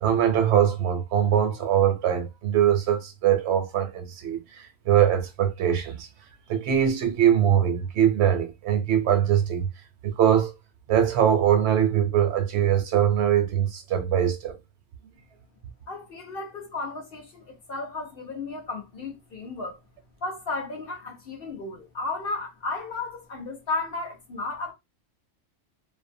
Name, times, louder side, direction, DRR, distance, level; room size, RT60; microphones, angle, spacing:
voice 1, 0.0-6.1 6.5-9.7 10.0-10.5 10.9-14.6, right 9 dB, 65° right, 0.8 m, -22 dB
voice 2, 15.9-19.8 20.2-24.7, left 3 dB, 55° left, 0.8 m, -34 dB
2.6 x 2.1 x 2.6 m
omnidirectional pair, 1.3 m